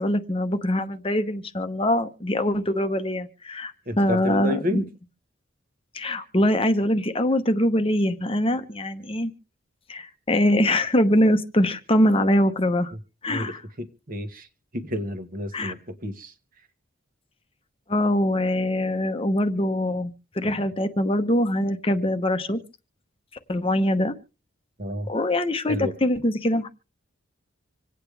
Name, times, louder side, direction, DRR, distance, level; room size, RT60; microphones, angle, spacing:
voice 1, 0.0-4.8 5.9-9.3 9.9-12.9 13.2-13.6 15.5-15.7 17.9-22.6 23.5-24.1 25.1-26.7, left 1 dB, 25° left, 0.9 m, -23 dB
voice 2, 3.9-4.8 12.9-13.0 13.3-14.5 14.7-16.3 24.8-25.1 25.7-25.9, left 1 dB, 45° right, 1.3 m, -30 dB
26.0 x 9.0 x 3.4 m
head